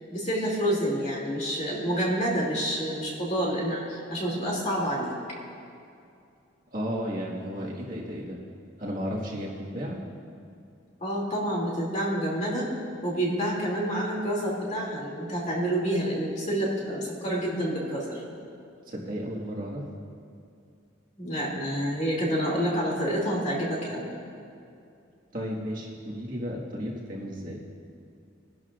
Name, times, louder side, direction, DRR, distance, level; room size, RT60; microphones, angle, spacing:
voice 1, 0.1-5.1 11.0-12.7 13.0-18.2 21.2-24.1, equal, 35° left, -4 dB, 2.7 m, -28 dB
voice 2, 6.7-8.4 8.8-10.0 18.9-19.8 25.3-27.6, equal, 45° right, -4 dB, 1.8 m, -33 dB
22.5 x 11.0 x 2.5 m, 2.5 s
head